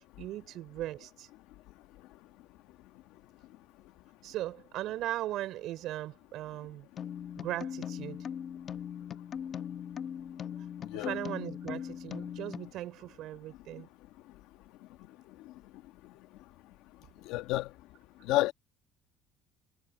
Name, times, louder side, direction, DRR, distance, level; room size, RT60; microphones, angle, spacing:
voice 1, 0.2-1.3 4.2-6.9 7.4-8.3 10.9-13.9, right 14 dB, 65° right, 4.1 m, -38 dB
sound 1, 7.0-12.7, left 8 dB, 40° left, 1.2 m, -40 dB
voice 2, 17.3-17.7 18.3-18.5, left 17 dB, 80° left, 1.6 m, -29 dB
cardioid pair, 135°, 0 cm